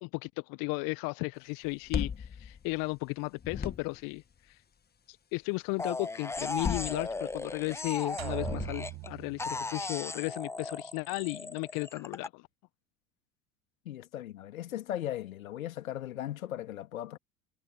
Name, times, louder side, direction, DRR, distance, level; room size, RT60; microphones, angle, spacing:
voice 1, 0.0-4.6 5.1-12.5, left 28 dB, 50° left, 1.5 m, -35 dB
sound 1, 1.6-3.1 3.4-4.2 6.3-7.6 8.3-9.1, left 7 dB, 20° left, 1.8 m, -37 dB
sound 2, 5.8-9.1 9.4-12.3, left 3 dB, 5° left, 0.7 m, -37 dB
sound 3, 8.2-10.0, right 20 dB, 40° right, 0.9 m, -41 dB
voice 2, 13.9-17.2, left 12 dB, 70° left, 2.2 m, -38 dB
figure-of-eight pair, 70°, 43 cm